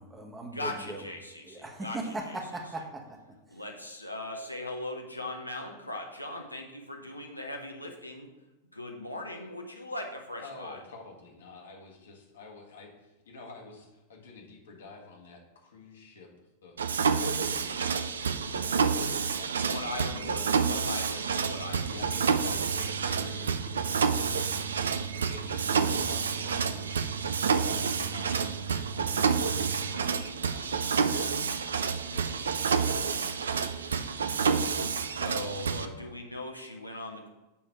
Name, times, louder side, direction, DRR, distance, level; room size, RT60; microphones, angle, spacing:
voice 1, 0.0-1.0 1.4-3.0, right 2 dB, 15° right, 2 dB, 1.1 m, -38 dB
voice 2, 0.5-2.5 3.5-8.3 8.7-10.8 19.7-22.0 25.2-25.3 25.7-26.1 34.1-34.5 35.1-37.3, left 1 dB, 85° left, 1 dB, 0.7 m, -39 dB
voice 3, 10.4-16.3 16.6-20.4 21.9-27.0 27.6-28.6 28.9-32.8 33.1-33.6, left 3 dB, 65° left, 1 dB, 1.4 m, -49 dB
Mechanisms, 16.8-35.9, right 6 dB, 70° right, 0.4 m, -29 dB
7.0 x 3.2 x 5.9 m, 1.1 s
figure-of-eight pair, 90°, 0 cm